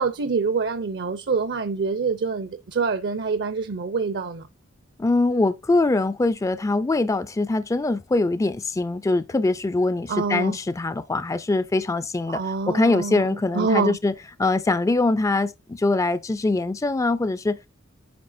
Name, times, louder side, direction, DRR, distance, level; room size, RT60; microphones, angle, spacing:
voice 1, 0.0-4.4 10.1-10.6 12.3-13.2 13.5-14.0, right 5 dB, 55° right, 0.6 m, -25 dB
voice 2, 5.0-17.7, left 2 dB, 15° left, 0.3 m, -23 dB
9.5 x 5.5 x 2.6 m
head